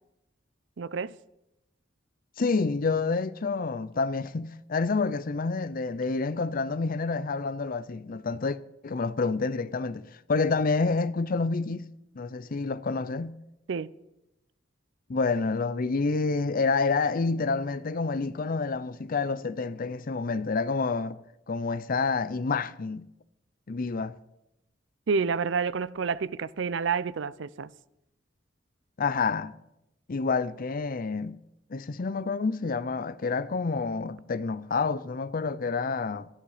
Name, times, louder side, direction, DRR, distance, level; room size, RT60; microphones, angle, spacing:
voice 1, 0.8-1.1 13.7-13.9 25.1-27.7, right 5 dB, 65° right, 0.5 m, -29 dB
voice 2, 2.4-8.6 8.8-10.0 10.3-11.9 12.1-13.4 15.1-21.2 21.5-23.0 23.7-24.1 29.0-29.5 30.1-31.4 31.7-36.3, left 4 dB, 45° left, 0.5 m, -28 dB
14.0 x 11.0 x 5.0 m
head